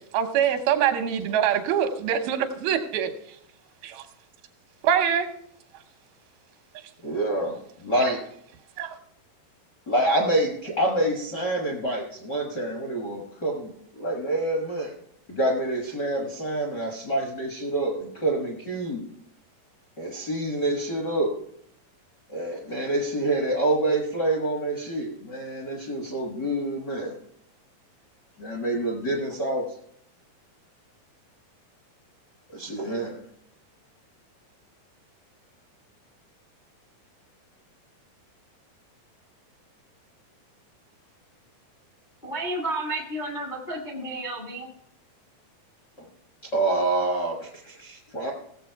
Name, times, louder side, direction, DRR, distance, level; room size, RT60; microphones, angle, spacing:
voice 1, 0.1-3.1 3.9-4.0 4.8-5.3 8.8-9.0, right 9 dB, 90° right, 6 dB, 2.8 m, -24 dB
voice 2, 7.0-8.2 9.9-14.9 15.3-19.0 20.0-21.3 22.3-27.1 28.4-29.7 32.5-33.2 46.4-48.3, right 1 dB, 55° left, 1 dB, 1.1 m, -27 dB
voice 3, 42.2-44.7, right 2 dB, 85° left, 0 dB, 0.4 m, -31 dB
17.0 x 7.2 x 4.6 m, 0.70 s
omnidirectional pair, 4.2 m